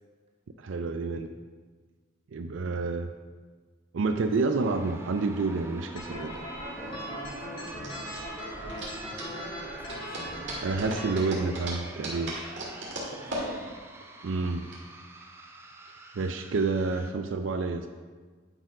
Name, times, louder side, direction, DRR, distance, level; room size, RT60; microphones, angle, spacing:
voice 1, 0.6-1.3 2.3-3.1 3.9-6.3 10.6-12.3 14.2-14.7 16.2-17.9, right 3 dB, 80° right, 7 dB, 0.4 m, -29 dB
sound 1, 4.6-17.1, right 2 dB, 15° right, 0.5 m, -45 dB
sound 2, 5.9-14.8, right 1 dB, 65° right, 2.1 m, -39 dB
sound 3, 6.0-11.1, equal, 25° left, 1.6 m, -39 dB
voice 2, 6.7-10.3 13.0-13.8, equal, 30° right, -1 dB, 1.2 m, -50 dB
9.8 x 4.5 x 4.8 m, 1.5 s
head